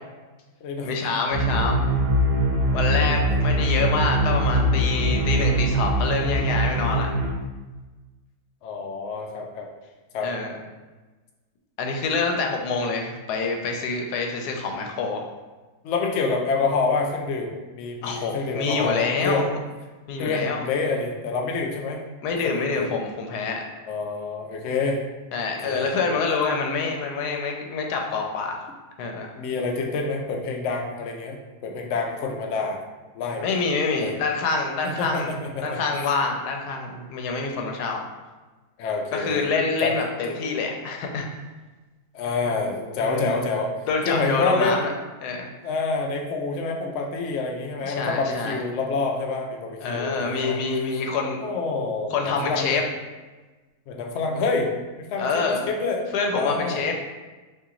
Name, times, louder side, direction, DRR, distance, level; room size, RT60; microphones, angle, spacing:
voice 1, 0.8-1.8 2.7-7.1 10.2-10.6 11.8-15.3 18.0-19.5 20.1-20.6 22.2-23.6 25.3-28.6 29.0-29.3 33.4-35.3 35.6-38.0 39.1-41.3 43.0-43.4 43.9-44.9 45.2-45.5 47.8-48.6 49.8-51.4 52.1-52.8 55.2-55.6 56.1-56.9, left 4 dB, 90° left, 2 dB, 1.1 m, -26 dB
sound 1, 1.3-7.3, right 1 dB, 65° right, 0.9 m, -22 dB
voice 2, 8.6-9.7 10.1-10.3 15.8-19.4 20.2-22.0 22.3-22.9 23.9-25.0 25.6-25.9 29.4-32.8 33.1-33.4 34.0-34.1 35.0-35.8 38.8-39.5 39.8-39.9 40.3-40.4 42.1-43.7 44.1-44.8 45.6-50.6 51.4-52.8 53.9-54.7 55.0-56.0 56.3-56.9, left 4 dB, 65° left, 1 dB, 0.7 m, -27 dB
2.9 x 2.8 x 3.7 m, 1.2 s
omnidirectional pair, 1.7 m